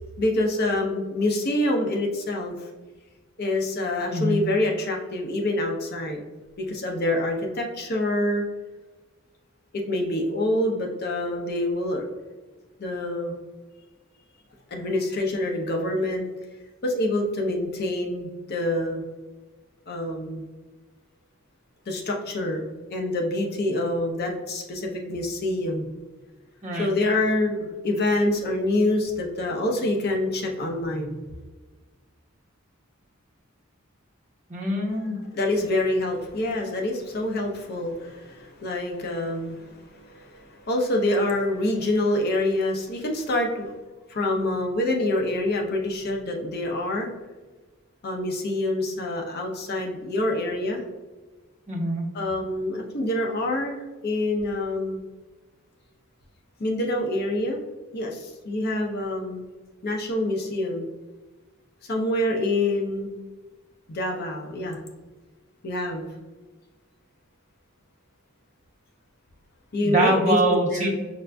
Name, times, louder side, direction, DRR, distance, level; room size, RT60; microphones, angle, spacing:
voice 1, 0.2-2.7 3.4-6.2 6.6-8.4 9.7-12.1 12.8-13.4 14.7-16.2 16.8-19.0 19.9-20.5 21.9-25.9 26.7-31.2 35.3-43.7 44.1-47.1 48.0-50.8 52.1-55.0 56.6-57.6 57.9-59.5 59.8-60.9 61.8-63.1 63.9-64.8 65.6-66.1 69.7-71.0, left 1 dB, 50° left, 1 dB, 0.6 m, -26 dB
voice 2, 4.1-4.4 26.6-26.9 34.5-35.2 51.7-52.0 69.8-71.0, right 1 dB, 35° right, -5 dB, 1.1 m, -24 dB
5.7 x 2.5 x 2.2 m, 1.2 s
head